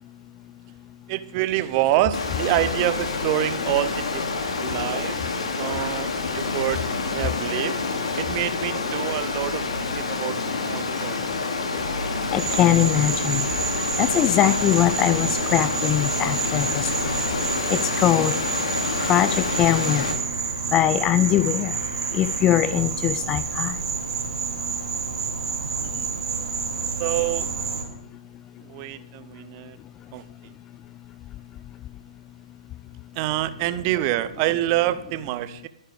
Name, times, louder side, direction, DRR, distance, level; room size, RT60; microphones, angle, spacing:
voice 1, 1.1-5.2 5.6-6.8 7.1-7.8 8.2-11.2 25.8-26.1 27.0-27.5 28.6-29.8 30.1-30.2 33.2-35.7, right 15 dB, 30° right, 14 dB, 0.6 m, -27 dB
Water, 2.1-20.1, left 4 dB, 55° left, 2.6 m, -28 dB
voice 2, 12.3-13.5 14.0-16.9 17.7-18.3 19.0-20.1 20.7-21.7 22.1-23.8, left 12 dB, 20° left, 15 dB, 0.4 m, -21 dB
Insect, 12.4-27.8, right 5 dB, 60° right, 3.0 m, -29 dB
sound 1, 17.2-23.1, left 2 dB, 75° left, 2.1 m, -44 dB
22.0 x 9.9 x 3.5 m, 0.82 s
figure-of-eight pair, 125°, 4 cm